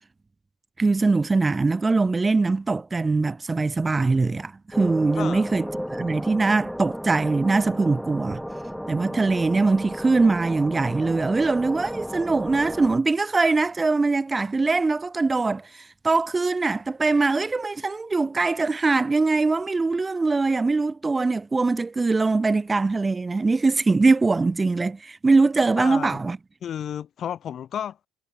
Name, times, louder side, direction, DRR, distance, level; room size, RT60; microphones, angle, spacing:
voice 1, 0.8-8.4 8.9-26.4, right 3 dB, 20° right, 1.0 m, -22 dB
sound 1, 4.7-13.0, equal, ahead, 1.8 m, -34 dB
voice 2, 5.2-5.5 25.8-26.2 26.6-28.0, left 9 dB, 50° left, 1.9 m, -32 dB
hypercardioid pair, 70°, 0 cm